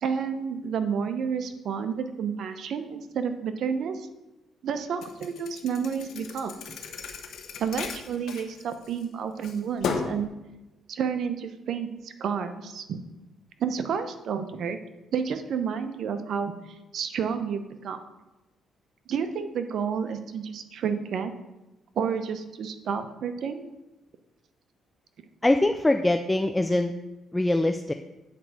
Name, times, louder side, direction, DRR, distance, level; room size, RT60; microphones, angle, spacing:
voice 1, 0.0-4.1 4.6-6.5 7.6-10.3 10.9-13.0 13.6-14.8 15.1-18.0 19.1-21.3 21.9-23.6, right 6 dB, 65° right, 9 dB, 0.8 m, -30 dB
Thump thud, 5.0-9.0 9.4-10.2, left 5 dB, 70° left, 1.0 m, -35 dB
voice 2, 25.4-26.9 27.3-27.9, left 1 dB, 15° left, 7 dB, 0.4 m, -23 dB
8.5 x 4.6 x 6.4 m, 1.0 s
cardioid pair, 90°, 0 cm